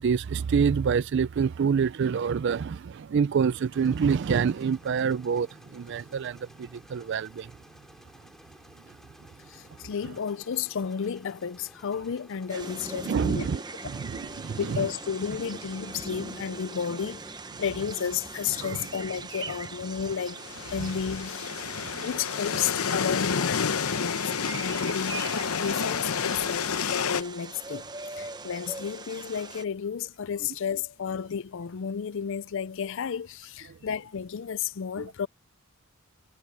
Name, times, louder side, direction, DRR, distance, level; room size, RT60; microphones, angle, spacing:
voice 1, 0.0-7.5 13.0-14.9 18.6-18.8 21.7-22.1, right 6 dB, 55° right, 0.4 m, -27 dB
sound 1, 3.7-16.0, equal, ahead, 2.4 m, -54 dB
voice 2, 9.5-13.5 14.6-17.3 17.6-20.4 20.7-21.8 22.0-24.2 24.6-35.3, left 7 dB, 60° left, 0.5 m, -32 dB
sound 2, 12.5-29.6, right 3 dB, 20° right, 0.9 m, -41 dB
sound 3, 20.4-27.2, left 6 dB, 85° left, 0.8 m, -29 dB
head